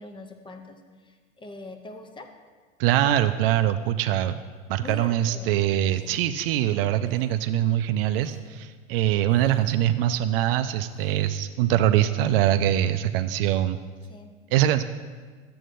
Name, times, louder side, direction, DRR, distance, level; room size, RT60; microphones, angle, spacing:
voice 1, 0.0-2.3 4.8-5.6 14.1-14.3, left 2 dB, 15° left, 5 dB, 0.5 m, -42 dB
voice 2, 2.8-4.4 4.7-13.8 14.5-14.8, right 12 dB, 45° right, 10 dB, 0.4 m, -23 dB
sound 1, 5.8-6.3 7.0-7.4 8.1-8.4 9.3-9.9 10.6-11.3 11.9-12.6 13.0-13.4, right 2 dB, 5° right, 1.4 m, -52 dB
12.0 x 7.7 x 2.5 m, 1.5 s
hypercardioid pair, 90°, 40 cm